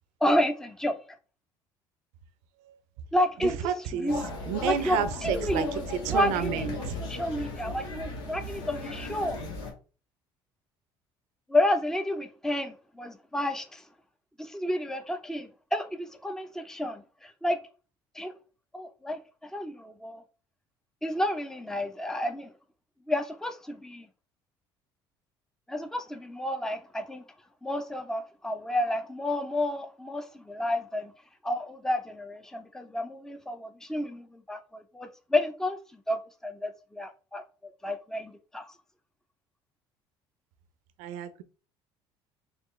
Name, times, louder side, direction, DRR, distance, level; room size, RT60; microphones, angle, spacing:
voice 1, 0.2-1.0 3.1-4.3 4.6-5.8 6.1-9.4 11.5-13.8 14.4-17.6 18.1-18.3 18.7-20.2 21.0-22.5 23.1-24.1 25.7-27.2 27.6-31.1 31.4-35.8 36.1-37.4 37.8-38.7, left 1 dB, 5° left, 0.6 m, -30 dB
voice 2, 3.6-4.1 4.5-5.7 6.0-7.0 41.0-41.4, right 9 dB, 75° right, 0.5 m, -30 dB
sound 1, 4.1-9.7, left 2 dB, 85° left, 1.1 m, -36 dB
4.2 x 2.4 x 3.1 m
hypercardioid pair, 70°, 12 cm